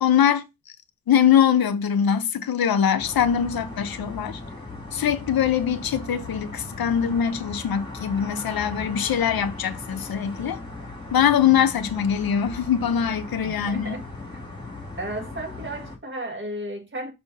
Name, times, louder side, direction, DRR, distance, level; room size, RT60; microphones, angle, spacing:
voice 1, 0.0-0.4 1.1-4.4 4.9-10.6 11.1-14.0, left 8 dB, 75° left, 0.8 m, -22 dB
sound 1, 3.0-16.0, left 2 dB, 15° left, 1.9 m, -38 dB
voice 2, 13.5-14.1 14.3-14.4 15.0-17.1, right 1 dB, 30° right, 1.7 m, -34 dB
6.5 x 2.9 x 5.2 m
wide cardioid pair, 135°, 36 cm